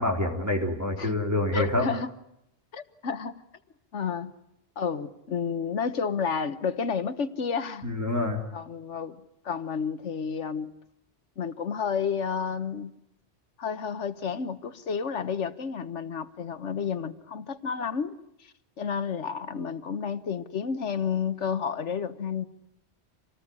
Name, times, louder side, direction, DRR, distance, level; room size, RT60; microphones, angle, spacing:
voice 1, 0.0-1.9 7.8-8.4, left 2 dB, 15° right, 1 dB, 4.1 m, -26 dB
voice 2, 1.5-2.1 2.7-3.4 3.9-4.3 4.8-7.9 8.5-10.7 11.4-12.9 13.6-22.5, left 6 dB, 80° left, 12 dB, 1.5 m, -31 dB
27.0 x 19.0 x 9.7 m, 0.81 s
omnidirectional pair, 1.2 m